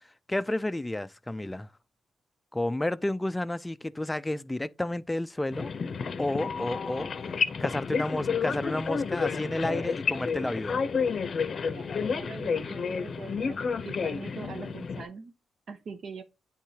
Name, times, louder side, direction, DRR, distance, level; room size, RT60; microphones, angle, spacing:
voice 1, 0.3-1.7 2.5-5.7 6.2-7.1 7.6-10.8, left 1 dB, 15° left, 0.3 m, -31 dB
sound 1, 5.5-15.0, left 5 dB, 50° left, 0.6 m, -30 dB
voice 2, 11.7-15.3 15.7-16.2, right 5 dB, 65° right, 1.0 m, -43 dB
9.1 x 3.7 x 2.8 m
cardioid pair, 80°, 0 cm